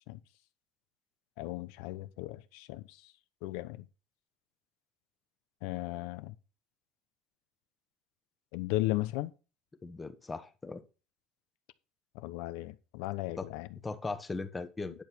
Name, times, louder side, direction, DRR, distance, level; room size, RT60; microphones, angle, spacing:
voice 1, 1.4-3.0 3.4-3.8 5.6-6.3 8.5-9.3 12.1-13.7 14.9-15.0, left 18 dB, 85° left, 0.9 m, -36 dB
voice 2, 9.8-10.8 13.4-13.5 13.8-15.0, left 3 dB, 15° left, 1.1 m, -38 dB
10.5 x 7.2 x 4.6 m
cardioid pair, 150°, 0 cm